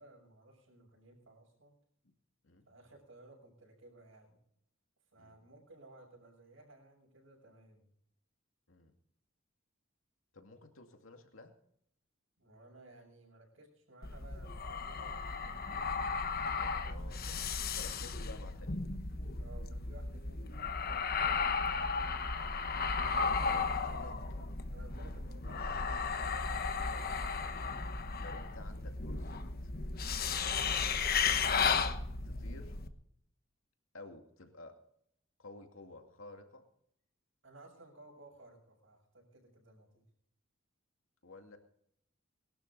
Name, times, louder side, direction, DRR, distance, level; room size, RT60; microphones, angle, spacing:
voice 1, 0.0-1.8 2.7-4.4 5.1-7.9 12.4-17.0 17.2-17.7 19.4-21.7 24.7-25.7 37.4-40.1, right 2 dB, 70° right, -5 dB, 6.0 m, -58 dB
voice 2, 10.3-11.5 16.8-17.5 17.7-18.8 22.6-24.2 26.9-27.8 28.2-29.7 30.4-30.8 32.2-32.8 33.9-34.8 35.4-36.7 41.2-41.6, left 2 dB, 80° left, 5 dB, 2.3 m, -53 dB
sound 1, 14.0-32.9, left 5 dB, 50° left, 1.2 m, -35 dB
21.5 x 12.0 x 4.0 m, 0.71 s
head